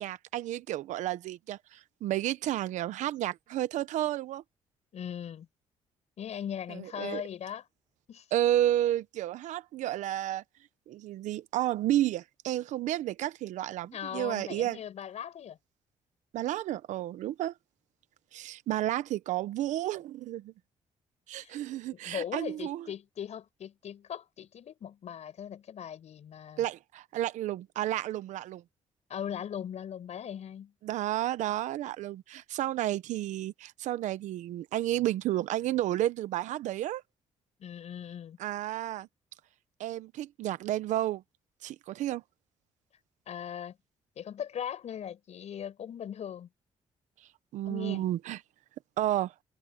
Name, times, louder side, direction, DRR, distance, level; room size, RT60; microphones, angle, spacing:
voice 1, 0.0-4.4 6.7-7.2 8.3-10.4 10.9-14.8 16.3-17.5 18.3-20.5 21.3-22.9 26.6-28.6 30.8-37.0 38.4-39.1 39.8-41.2 41.6-42.2 47.5-48.4 49.0-49.3, right 13 dB, 80° right, 0.9 m, -31 dB
voice 2, 4.9-5.5 6.2-7.7 8.1-8.3 13.9-15.6 21.4-21.6 22.0-26.6 29.1-30.7 37.6-38.4 43.3-43.8 44.2-46.5 47.6-48.0, left 9 dB, 65° left, 6.3 m, -39 dB
cardioid pair, 75°, 12 cm